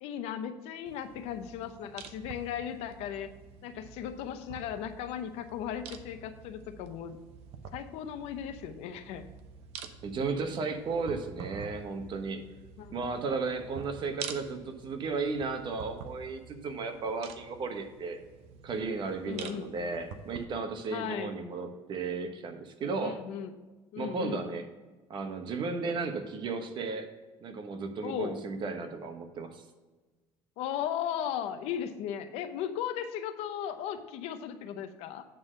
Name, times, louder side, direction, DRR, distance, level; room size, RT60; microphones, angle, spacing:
voice 1, 0.0-3.3 3.6-7.2 7.7-9.3 12.8-12.9 19.2-19.7 20.9-21.3 23.0-23.5 23.9-24.4 28.0-28.4 30.6-35.3, left 9 dB, 80° left, 9 dB, 0.8 m, -36 dB
sound 1, 0.9-20.4, right 6 dB, 80° right, 0.8 m, -48 dB
voice 2, 10.0-12.4 12.9-18.2 18.6-23.2 24.0-24.6 25.1-27.1 27.4-29.6, right 4 dB, 50° right, 6 dB, 1.1 m, -34 dB
8.8 x 3.9 x 6.5 m, 1.2 s
cardioid pair, 120°, 11 cm